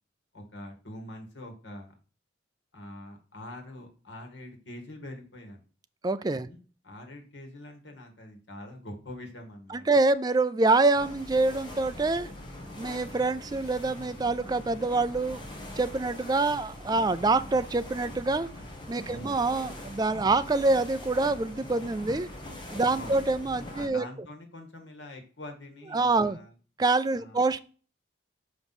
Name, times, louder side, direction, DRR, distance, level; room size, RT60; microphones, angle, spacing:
voice 1, 0.3-1.9 2.7-5.6 6.4-9.9 19.1-19.4 22.9-23.3 23.7-26.5 27.1-27.4, left 1 dB, 75° left, 3 dB, 1.9 m, -44 dB
voice 2, 6.0-6.5 9.7-12.3 12.7-15.4 15.8-18.5 18.9-22.3 22.7-24.0 25.9-26.4 26.8-27.6, right 3 dB, 20° right, 13 dB, 0.3 m, -26 dB
sound 1, 10.9-23.9, left 1 dB, 25° left, 1.4 m, -42 dB
5.9 x 5.2 x 4.2 m, 0.37 s
head